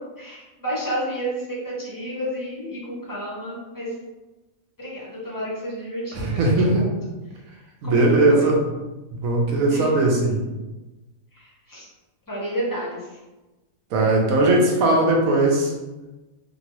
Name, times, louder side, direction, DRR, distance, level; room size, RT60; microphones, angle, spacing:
voice 1, 0.2-3.9 4.8-6.9 7.8-8.5 9.7-10.1 11.3-11.9 12.3-13.2, equal, 20° left, -6 dB, 0.6 m, -31 dB
voice 2, 6.1-6.8 7.8-8.6 9.1-10.4 13.9-15.7, right 2 dB, 85° right, 0 dB, 1.1 m, -19 dB
2.9 x 2.6 x 2.9 m, 1.1 s
omnidirectional pair, 1.4 m